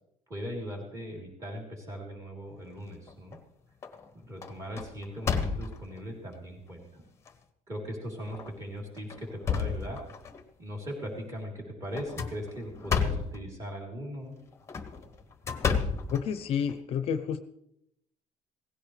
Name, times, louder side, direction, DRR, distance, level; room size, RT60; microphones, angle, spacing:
voice 1, 0.3-3.4 4.2-7.0 7.7-10.0 10.6-14.3, equal, 25° right, -1 dB, 3.6 m, -39 dB
sound 1, 2.8-3.4 3.8-4.1 4.4-6.0 6.7-6.8 7.3-7.4 8.3-8.5 9.0-10.4 11.9-13.4 14.5-16.8, left 6 dB, 20° left, 0.9 m, -31 dB
voice 2, 16.1-17.4, left 7 dB, 50° left, 11 dB, 0.6 m, -30 dB
17.0 x 15.5 x 3.3 m, 0.79 s
cardioid pair, 175°, 13 cm